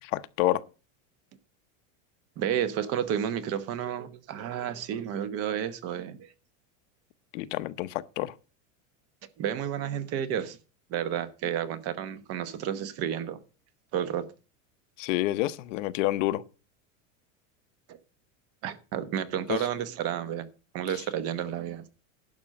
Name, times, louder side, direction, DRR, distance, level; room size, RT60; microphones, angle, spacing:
voice 1, 0.0-0.6 7.3-8.3 15.0-16.4 19.5-19.6, left 16 dB, 70° left, 0.9 m, -28 dB
voice 2, 2.4-6.3 9.4-10.6 10.9-13.4 13.9-14.3 17.9-18.0 18.6-20.5 20.7-21.8, right 9 dB, 35° right, 1.1 m, -31 dB
11.5 x 5.5 x 7.5 m
supercardioid pair, 170°, 39 cm